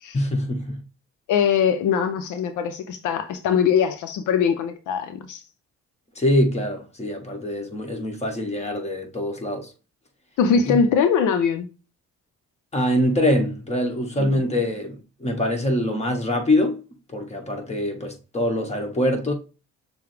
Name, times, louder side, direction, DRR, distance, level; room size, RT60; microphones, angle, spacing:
voice 1, 0.1-0.8 6.1-9.7 10.6-10.8 12.7-16.8 17.1-19.3, left 1 dB, 20° left, 1.5 m, -24 dB
voice 2, 1.3-5.4 10.4-11.7 14.2-14.4, left 7 dB, 80° left, 0.6 m, -22 dB
6.6 x 2.2 x 3.3 m
cardioid pair, 90°, 30 cm